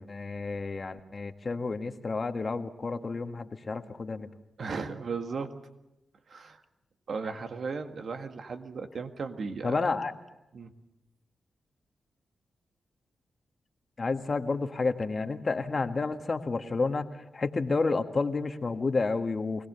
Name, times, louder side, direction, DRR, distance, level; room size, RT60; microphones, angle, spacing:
voice 1, 0.0-4.3 9.6-10.1 14.0-17.1 17.3-19.7, left 3 dB, 45° left, 7 dB, 1.5 m, -30 dB
voice 2, 4.6-5.5 6.3-6.6 7.1-9.7 10.5-10.7, right 4 dB, 65° right, 6 dB, 1.7 m, -36 dB
24.5 x 17.5 x 6.9 m, 0.94 s
cardioid pair, 50°, 0 cm